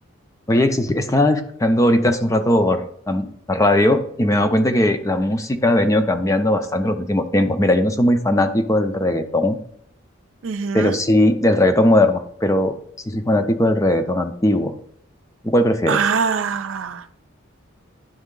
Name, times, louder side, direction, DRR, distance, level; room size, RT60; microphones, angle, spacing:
voice 1, 0.5-9.6 10.7-12.7 13.1-14.7 15.4-16.0, left 1 dB, 15° left, 0.5 m, -18 dB
voice 2, 10.4-11.0 15.9-17.1, right 6 dB, 70° right, 0.4 m, -23 dB
10.5 x 3.6 x 3.7 m
head